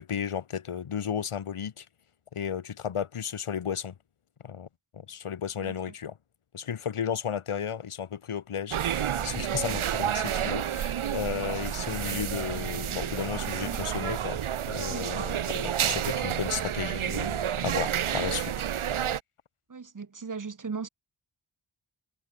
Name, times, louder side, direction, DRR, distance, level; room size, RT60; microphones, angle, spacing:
voice 1, 0.0-1.9 2.3-3.9 4.4-4.7 4.9-6.2 6.5-14.4 14.7-18.5, left 8 dB, 90° left, 1.2 m, -34 dB
sound 1, 8.7-19.2, right 9 dB, 75° right, 0.8 m, -30 dB
voice 2, 19.7-20.9, right 5 dB, 40° right, 1.1 m, -37 dB
wide cardioid pair, 65°, 49 cm